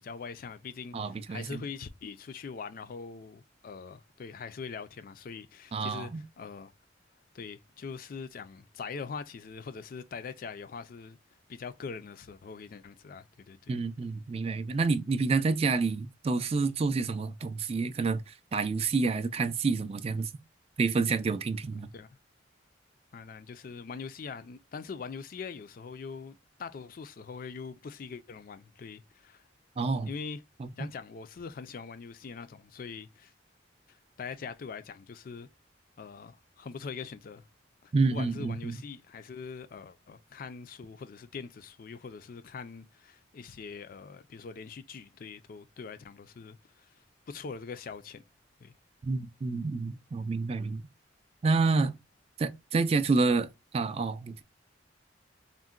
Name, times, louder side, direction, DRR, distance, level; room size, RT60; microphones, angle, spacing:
voice 1, 0.0-6.7 7.3-11.2 11.5-13.8 21.9-22.1 23.1-29.5 30.0-30.4 30.8-33.3 33.9-35.5 36.0-37.4 37.8-48.2 48.6-48.7, left 5 dB, 50° left, 0.3 m, -43 dB
voice 2, 0.9-1.6 5.7-6.2 13.7-20.3 20.8-21.9 29.8-30.1 30.6-30.7 37.9-38.8 49.0-50.8 51.4-52.0 52.4-53.5 53.7-54.4, right 4 dB, 30° right, 0.3 m, -28 dB
3.8 x 2.1 x 2.3 m
head